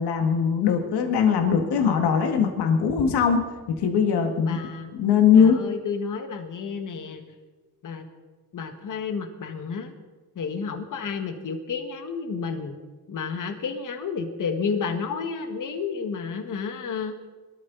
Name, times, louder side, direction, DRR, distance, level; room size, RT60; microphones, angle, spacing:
voice 1, 0.0-4.6 4.9-5.6, left 7 dB, 85° left, 4 dB, 2.0 m, -21 dB
voice 2, 4.4-4.9 5.3-7.2 7.8-8.1 8.5-9.9 10.3-12.8 13.1-17.2, left 5 dB, 50° left, 5 dB, 1.8 m, -31 dB
23.0 x 13.5 x 4.1 m, 1.3 s
cardioid pair, 115°, 39 cm